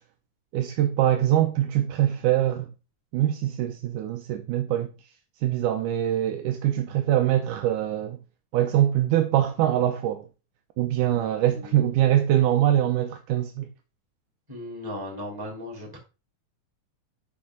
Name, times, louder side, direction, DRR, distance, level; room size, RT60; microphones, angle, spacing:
voice 1, 0.5-2.7 3.1-4.9 5.4-8.2 8.5-10.3 10.8-13.7, right 12 dB, 80° right, 2.1 m, -23 dB
voice 2, 11.1-11.8 14.5-16.0, left 1 dB, 5° right, 3.0 m, -37 dB
13.0 x 4.4 x 3.8 m
omnidirectional pair, 3.7 m